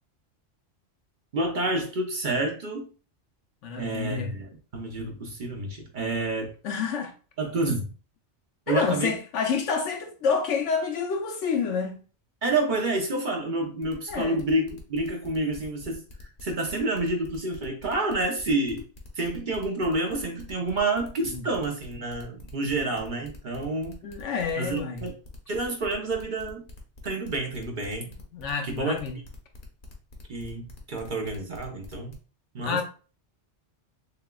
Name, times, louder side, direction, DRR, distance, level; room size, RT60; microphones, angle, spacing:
voice 1, 1.3-2.9 3.8-6.5 7.4-7.9 8.7-9.1 12.4-18.8 19.2-24.0 24.6-25.1 25.5-26.7 27.0-28.1 28.6-28.9 30.3-32.2 32.5-32.8, right 2 dB, 45° right, 0.8 m, -29 dB
voice 2, 3.6-4.4 6.6-7.1 8.7-12.0 14.1-14.4 21.3-21.5 22.6-22.7 24.0-25.0 28.3-29.2 32.6-32.8, left 5 dB, 75° left, 1.1 m, -28 dB
sound 1, 13.8-32.1, left 1 dB, 45° left, 1.0 m, -48 dB
6.6 x 2.2 x 2.3 m
omnidirectional pair, 1.2 m